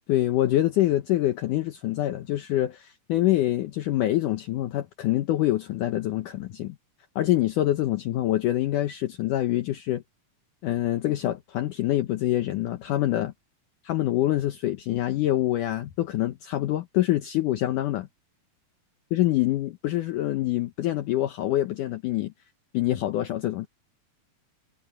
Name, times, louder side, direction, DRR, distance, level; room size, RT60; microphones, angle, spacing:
voice 1, 0.1-6.8 7.2-10.0 10.6-13.3 13.8-18.1 19.1-22.3 22.7-23.7, left 14 dB, 70° left, 2.3 m, -25 dB
omnidirectional pair, 4.3 m